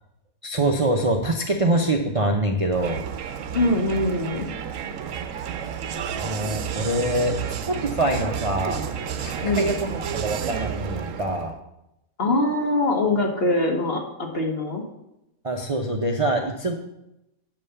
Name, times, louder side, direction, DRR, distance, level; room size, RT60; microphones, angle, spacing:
voice 1, 0.4-3.0 6.1-8.8 9.2-11.5 15.4-16.7, right 1 dB, 35° right, 1 dB, 0.6 m, -25 dB
Crowd, 2.7-11.6, right 7 dB, 70° right, 1.0 m, -31 dB
voice 2, 3.5-4.5 9.4-9.7 12.2-14.8, left 2 dB, 45° left, 1 dB, 1.6 m, -23 dB
7.9 x 5.5 x 6.7 m, 0.86 s
omnidirectional pair, 1.5 m